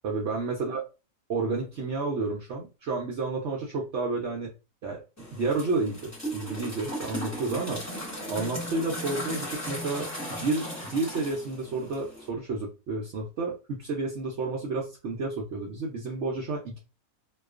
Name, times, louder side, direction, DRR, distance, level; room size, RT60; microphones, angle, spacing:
voice 1, 0.0-0.8 1.3-4.5 4.8-5.0 5.3-7.8 8.3-10.6 10.9-16.8, right 3 dB, 65° right, -1 dB, 0.7 m, -31 dB
sound 1, 5.2-12.3, equal, 15° left, 0.7 m, -37 dB
2.3 x 2.3 x 2.3 m, 0.30 s
omnidirectional pair, 1.6 m